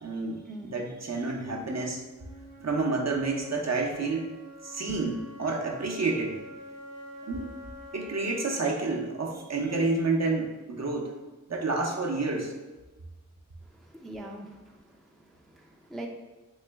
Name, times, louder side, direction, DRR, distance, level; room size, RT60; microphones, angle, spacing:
voice 1, 0.0-2.0 2.6-4.3 4.6-6.4 7.2-7.6 7.9-11.1 11.5-12.6, right 3 dB, 55° right, 0 dB, 0.7 m, -29 dB
Wind instrument woodwind instrument, 2.1-10.1, equal, 75° right, 0.8 m, -48 dB
voice 2, 13.6-16.1, right 1 dB, ahead, 0 dB, 0.4 m, -43 dB
3.1 x 2.9 x 3.4 m, 1.2 s
wide cardioid pair, 45°, 33 cm